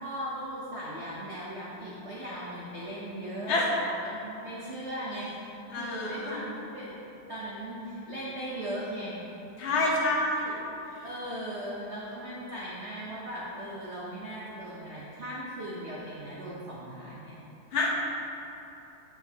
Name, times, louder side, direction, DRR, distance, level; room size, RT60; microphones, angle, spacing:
voice 1, 0.0-5.5 5.8-7.0 7.3-9.2 9.8-9.9 11.0-17.4, equal, 60° right, -6 dB, 0.7 m, -38 dB
voice 2, 5.7-6.4 9.6-10.6 10.9-11.0 17.7-17.9, left 2 dB, 45° left, -4 dB, 0.9 m, -28 dB
7.4 x 7.3 x 2.8 m, 3.0 s
omnidirectional pair, 2.4 m